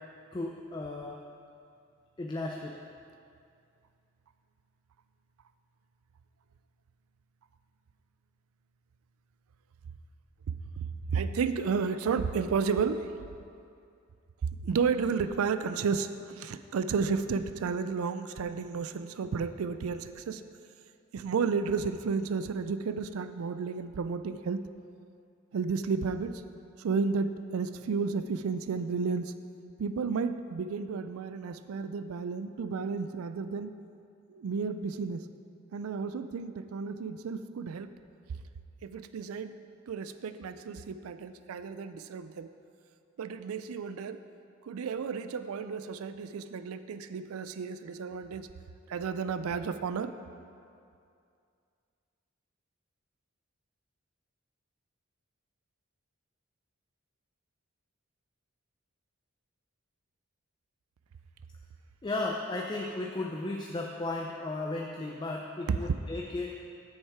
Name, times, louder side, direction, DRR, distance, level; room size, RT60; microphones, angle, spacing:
voice 1, 0.3-1.2 2.2-2.8 62.0-66.6, left 2 dB, 20° left, 0 dB, 0.4 m, -35 dB
voice 2, 10.8-13.1 14.6-20.4 21.1-24.7 25.5-26.4 26.8-29.3 29.8-33.7 34.3-35.2 35.7-37.9 38.8-39.6 39.9-42.5 43.2-44.2 44.6-48.5 48.9-50.1, right 5 dB, 90° right, 11 dB, 0.4 m, -32 dB
7.2 x 6.6 x 4.7 m, 2.4 s
head